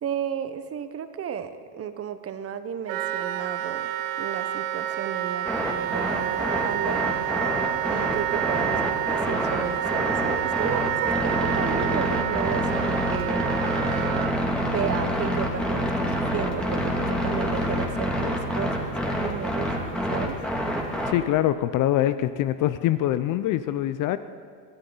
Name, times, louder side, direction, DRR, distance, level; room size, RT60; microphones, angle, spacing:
voice 1, 0.0-3.9 4.2-7.1 7.9-13.5 14.6-20.4, right 8 dB, 30° right, 10 dB, 1.0 m, -33 dB
Wind instrument woodwind instrument, 2.9-14.3, right 13 dB, 75° right, 1.0 m, -28 dB
sound 1, 5.5-21.1, equal, ahead, 2.3 m, -27 dB
voice 2, 21.1-24.2, left 13 dB, 40° left, 13 dB, 0.6 m, -24 dB
23.0 x 14.0 x 4.0 m, 2.1 s
supercardioid pair, 110°, 48 cm